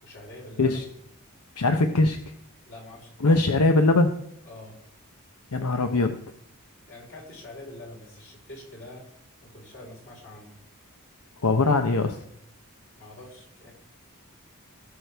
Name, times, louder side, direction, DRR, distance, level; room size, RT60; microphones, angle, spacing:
voice 1, 0.0-0.8 1.9-2.0 2.7-3.3 4.4-4.8 6.9-9.1 9.4-10.5 13.0-13.7, left 1 dB, 55° left, -3 dB, 4.3 m, -45 dB
voice 2, 1.6-2.2 3.2-4.2 5.5-6.1 11.4-12.2, left 2 dB, 85° left, 6 dB, 0.8 m, -21 dB
17.5 x 6.5 x 3.4 m, 0.71 s
head